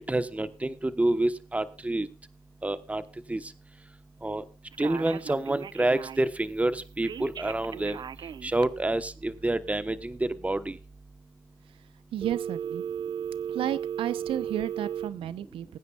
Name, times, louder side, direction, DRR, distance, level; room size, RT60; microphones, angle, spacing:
voice 1, 0.1-2.1 2.6-3.0 3.3-3.4 4.2-4.4 4.8-8.0 8.4-10.8, right 2 dB, 15° right, 12 dB, 1.1 m, -28 dB
Telephone, 4.7-6.4 7.0-8.6 12.2-15.1, right 8 dB, 50° right, 0.5 m, -35 dB
voice 2, 12.1-12.8 13.5-15.8, right 11 dB, 75° right, 16 dB, 0.8 m, -32 dB
21.5 x 9.5 x 2.4 m, 0.32 s
supercardioid pair, 55°, 9 cm